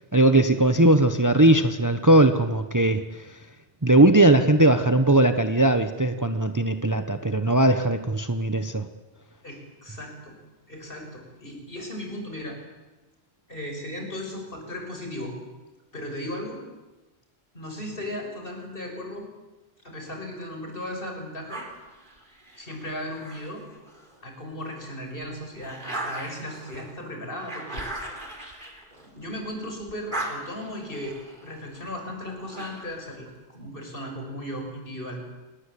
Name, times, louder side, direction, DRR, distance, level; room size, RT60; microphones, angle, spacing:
voice 1, 0.1-3.3 3.8-8.9, right 1 dB, 15° right, 8 dB, 1.1 m, -19 dB
voice 2, 9.4-10.4 10.7-12.6 13.5-15.3 15.9-16.6 17.5-19.2 19.8-21.6 22.5-23.6 24.2-27.8 29.0-35.2, left 1 dB, 50° left, 3 dB, 6.7 m, -36 dB
sound 1, 21.5-24.2 24.7-29.5 29.8-33.1, right 1 dB, 45° right, 4.5 m, -39 dB
28.5 x 20.5 x 8.6 m, 1.1 s
omnidirectional pair, 1.2 m